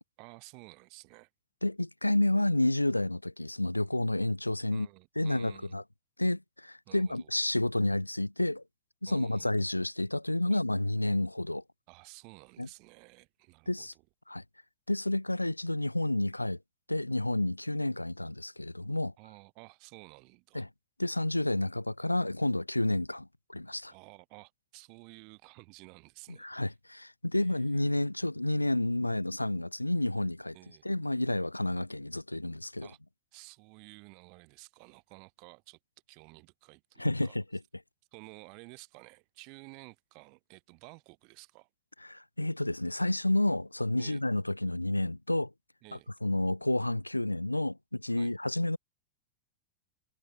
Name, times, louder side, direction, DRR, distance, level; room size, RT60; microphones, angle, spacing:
voice 1, 0.2-1.3 4.7-5.8 6.9-7.3 9.1-9.5 10.5-10.6 11.9-14.0 19.2-20.7 23.9-26.5 27.3-27.9 30.5-30.8 32.8-33.0 33.3-35.8 36.1-37.3 38.1-41.7 44.0-44.2 45.8-46.1 48.1-48.3, right 32 dB, 45° right, 4.9 m, -53 dB
voice 2, 1.6-4.9 5.2-5.8 6.2-8.6 9.0-11.6 12.6-12.7 13.7-13.9 14.3-14.4 14.9-16.6 16.9-19.1 20.5-20.7 21.0-23.9 26.4-30.5 30.8-32.9 37.0-37.4 42.0-45.5 46.2-48.8, left 1 dB, 85° left, 0.3 m, -30 dB
figure-of-eight pair, 90°, 0 cm